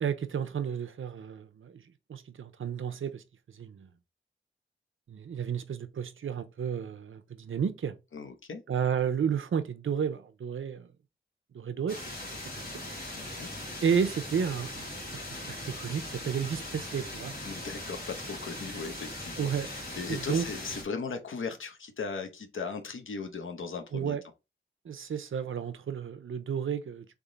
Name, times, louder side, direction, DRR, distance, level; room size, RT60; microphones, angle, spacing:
voice 1, 0.0-1.8 2.1-3.2 3.5-3.9 5.1-8.0 8.7-10.9 11.5-12.0 13.8-14.8 15.1-17.3 19.4-19.7 20.1-20.5 23.9-24.2 24.8-27.1, right 7 dB, 85° right, 0.7 m, -32 dB
voice 2, 8.1-8.6 13.1-13.5 17.4-24.2, left 5 dB, 85° left, 0.9 m, -38 dB
sound 1, 11.9-20.8, left 1 dB, 50° left, 2.2 m, -40 dB
3.7 x 3.6 x 4.0 m
wide cardioid pair, 80°, 20 cm